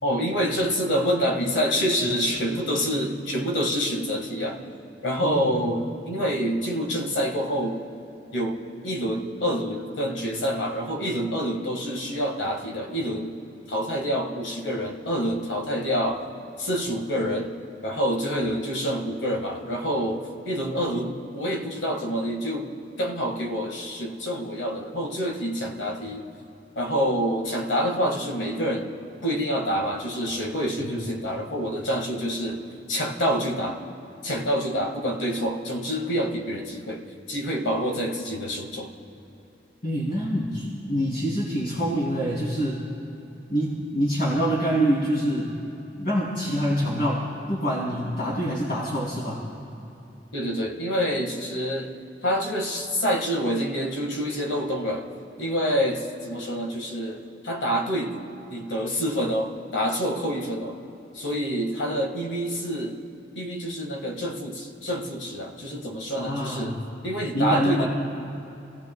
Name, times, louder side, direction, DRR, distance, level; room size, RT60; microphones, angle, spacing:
voice 1, 0.0-4.7 5.0-7.8 8.3-13.3 13.7-16.3 16.6-17.5 17.8-26.3 26.7-28.9 29.2-32.6 32.9-33.8 34.2-38.9 50.3-55.1 55.4-60.8 61.1-63.0 63.3-67.9, equal, 85° left, 2 dB, 1.6 m, -27 dB
voice 2, 5.2-5.6 30.8-30.9 39.8-42.8 43.5-45.5 46.0-49.4 66.2-66.7 67.3-67.9, equal, 50° left, -7 dB, 2.8 m, -26 dB
29.0 x 16.0 x 2.2 m, 3.0 s
head